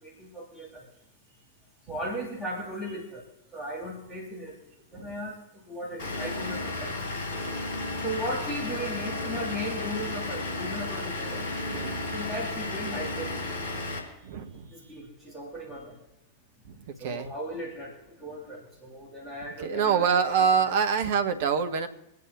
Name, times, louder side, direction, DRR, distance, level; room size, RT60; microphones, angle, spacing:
voice 1, 0.0-0.9 1.9-3.2 3.5-4.5 4.9-5.4 5.7-7.0 8.0-11.5 12.1-13.4 14.7-16.0 17.0-17.9 18.2-20.7, equal, ahead, -6 dB, 3.3 m, -36 dB
Vehicle / Engine, 6.0-14.0, left 2 dB, 55° left, 4.0 m, -33 dB
voice 2, 11.7-12.0 14.2-14.7 17.0-17.3 19.6-21.9, right 6 dB, 55° right, 7 dB, 1.0 m, -25 dB
26.0 x 9.3 x 2.4 m, 0.89 s
figure-of-eight pair, 90°, 0 cm